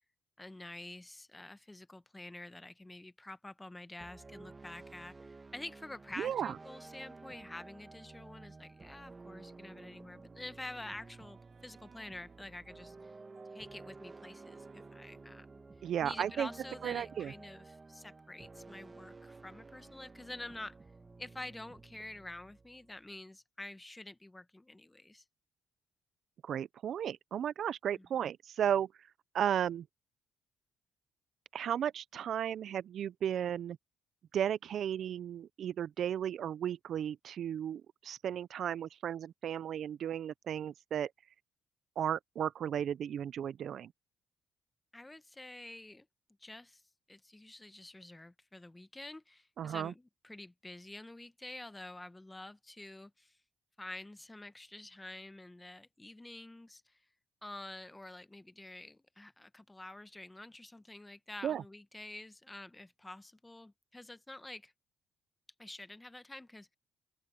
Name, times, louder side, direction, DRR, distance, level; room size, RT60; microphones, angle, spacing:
voice 1, 0.4-13.1 13.5-15.6 16.0-20.8 21.2-25.2 27.9-28.1 44.9-46.1 46.4-46.8 47.1-53.4 53.8-57.0 57.4-64.7 65.6-66.7, left 2 dB, 15° left, 1.1 m, -48 dB
sound 1, 4.0-23.2, right 3 dB, 25° right, 1.6 m, -53 dB
voice 2, 6.2-6.5 15.8-16.5 16.8-17.3 26.4-28.9 29.3-29.8 31.5-33.8 34.3-41.1 42.0-43.9 49.6-49.9 61.4-61.6, right 9 dB, 65° right, 0.5 m, -34 dB
sound 2, 10.6-15.8, right 6 dB, 50° right, 3.5 m, -63 dB
open air
cardioid pair, 90°, 0 cm